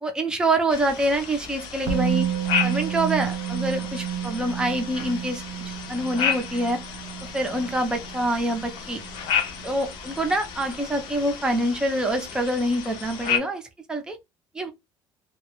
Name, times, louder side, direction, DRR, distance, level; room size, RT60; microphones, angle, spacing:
voice 1, 0.0-2.3 2.6-5.4 5.9-6.8 7.2-9.0 9.6-13.6 13.9-14.2 14.5-14.7, right 1 dB, 10° right, 0.5 m, -26 dB
sound 1, 0.7-13.4, left 7 dB, 75° left, 0.6 m, -32 dB
Musical instrument, 1.9-9.8 10.0-10.2, right 10 dB, 70° right, 0.5 m, -31 dB
2.2 x 2.0 x 2.9 m
cardioid pair, 180°, 8 cm